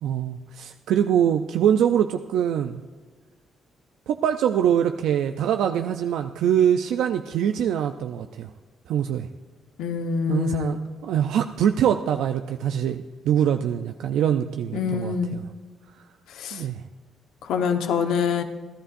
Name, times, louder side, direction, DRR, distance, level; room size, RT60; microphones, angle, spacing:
voice 1, 0.0-2.8 4.1-8.5 8.9-9.3 10.3-15.4 16.5-16.8, right 9 dB, 80° right, 6 dB, 0.5 m, -23 dB
voice 2, 9.8-10.8 14.7-15.4 16.3-16.6 17.4-18.4, left 6 dB, 85° left, 6 dB, 1.2 m, -25 dB
30.0 x 11.5 x 2.6 m, 1.4 s
cardioid pair, 90°, 0 cm